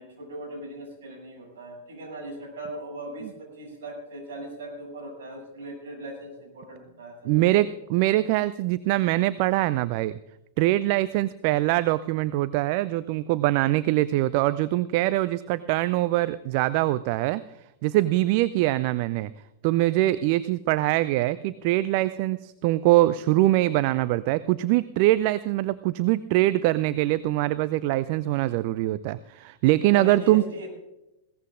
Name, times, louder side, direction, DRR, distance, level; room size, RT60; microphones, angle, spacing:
voice 1, 0.0-7.6 29.8-30.7, right 1 dB, 65° right, 0 dB, 7.1 m, -39 dB
voice 2, 7.3-10.1 10.6-17.4 17.8-19.3 19.6-30.4, right 16 dB, 50° right, 16 dB, 0.4 m, -23 dB
20.5 x 17.5 x 2.5 m, 0.92 s
figure-of-eight pair, 95°, 0 cm